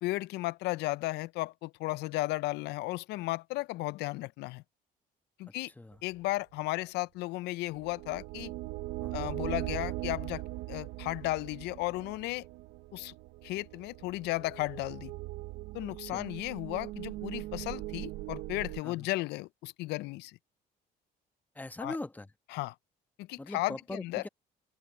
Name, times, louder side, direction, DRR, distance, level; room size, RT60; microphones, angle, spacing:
voice 1, 0.0-4.6 5.4-5.7 6.0-8.5 9.1-10.4 10.7-12.5 12.9-13.1 13.4-15.1 15.7-20.4 21.8-22.0 22.5-22.7 23.2-24.2, left 19 dB, 85° left, 0.4 m, -34 dB
voice 2, 5.5-6.0 9.0-9.3 16.0-16.3 18.8-19.1 21.5-22.3 23.4-24.3, left 2 dB, 10° left, 1.1 m, -42 dB
sound 1, 7.7-18.8, right 18 dB, 90° right, 0.6 m, -40 dB
cardioid pair, 110°, 17 cm